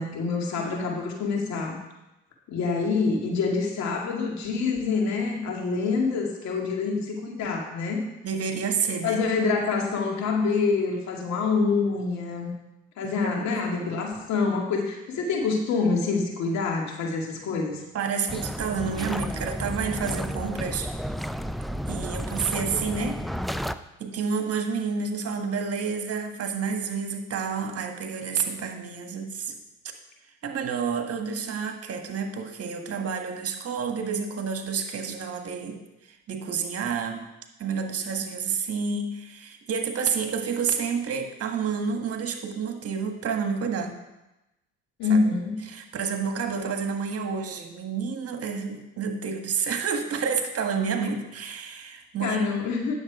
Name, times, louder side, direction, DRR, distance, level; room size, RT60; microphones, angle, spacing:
voice 1, 0.0-1.8 2.5-8.0 9.0-12.5 13.0-17.8 45.0-45.5 52.2-52.9, left 4 dB, 70° left, 0 dB, 2.3 m, -26 dB
voice 2, 8.2-9.2 13.0-13.9 17.9-20.9 21.9-23.2 24.0-29.5 30.4-35.8 36.3-37.2 37.6-44.0 45.1-45.3 45.7-52.4, right 6 dB, 55° right, 4 dB, 1.6 m, -29 dB
sound 1, 18.3-23.7, equal, ahead, 0.5 m, -32 dB
9.7 x 7.2 x 5.0 m, 0.95 s
hypercardioid pair, 60°, 29 cm